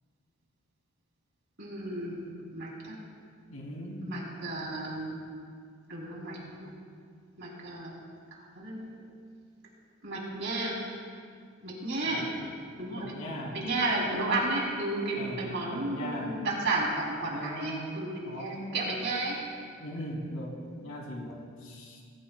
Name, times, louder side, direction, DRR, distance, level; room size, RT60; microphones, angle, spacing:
voice 1, 1.6-3.0 4.0-5.2 5.9-6.7 7.4-8.0 8.6-9.1 10.0-10.7 11.6-12.3 12.8-13.1 13.5-19.4, right 2 dB, 60° right, -3 dB, 3.4 m, -33 dB
voice 2, 3.5-4.1 4.4-4.6 12.0-12.2 12.9-13.6 15.1-16.4 17.3-17.9 18.3-18.7 19.8-22.0, equal, 85° left, -1 dB, 3.1 m, -40 dB
22.0 x 14.5 x 2.3 m, 2.1 s
head